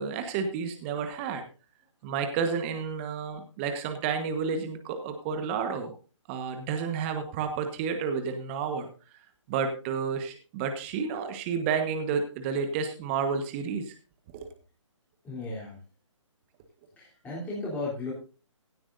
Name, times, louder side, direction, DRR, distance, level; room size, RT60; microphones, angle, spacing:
voice 1, 0.0-1.4 2.0-5.9 6.3-8.9 9.5-13.9 14.3-14.5, right 6 dB, 25° right, 6 dB, 1.3 m, -31 dB
voice 2, 15.2-15.8 17.0-18.1, left 2 dB, 10° left, -8 dB, 3.6 m, -35 dB
16.5 x 12.0 x 2.7 m, 0.34 s
figure-of-eight pair, 150°, 16 cm